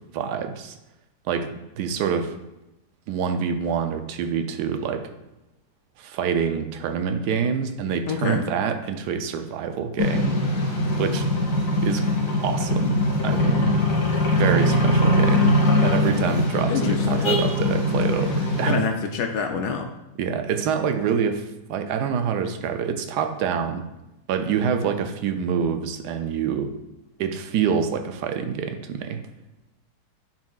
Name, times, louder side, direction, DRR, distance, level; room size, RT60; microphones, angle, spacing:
voice 1, 0.1-0.7 1.3-2.4 3.1-5.0 6.0-10.4 11.0-11.3 11.8-12.0 12.4-13.7 14.3-15.5 15.8-18.9 20.2-23.8 24.3-26.7 27.2-29.2, right 7 dB, 85° right, 7 dB, 1.2 m, -26 dB
voice 2, 8.1-8.4 16.7-17.3 18.6-19.9, left 6 dB, 80° left, 4 dB, 1.1 m, -27 dB
sound 1, 10.0-18.7, left 1 dB, 60° left, 1.6 m, -21 dB
9.4 x 4.4 x 2.3 m, 0.94 s
omnidirectional pair, 1.7 m